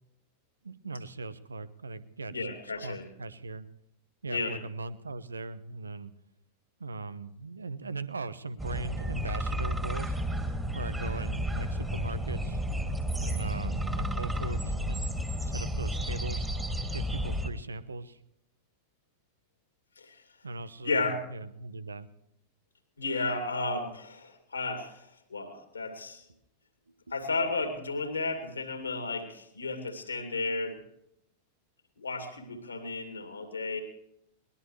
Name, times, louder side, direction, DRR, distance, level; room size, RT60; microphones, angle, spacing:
voice 1, 0.6-3.7 4.2-6.1 6.8-10.2 10.7-12.6 13.2-15.1 15.4-16.5 16.9-18.2 20.4-22.1 26.3-26.4 27.1-27.2 30.5-30.6, right 3 dB, 75° right, 16 dB, 0.9 m, -39 dB
voice 2, 2.3-3.1 4.3-4.5 20.0-20.2 20.8-21.3 23.0-26.2 27.1-30.8 32.0-33.8, left 3 dB, 75° left, 6 dB, 2.6 m, -33 dB
sound 1, 8.6-17.5, equal, 10° right, 2.3 m, -32 dB
22.0 x 20.0 x 3.2 m, 0.80 s
figure-of-eight pair, 90°, 0 cm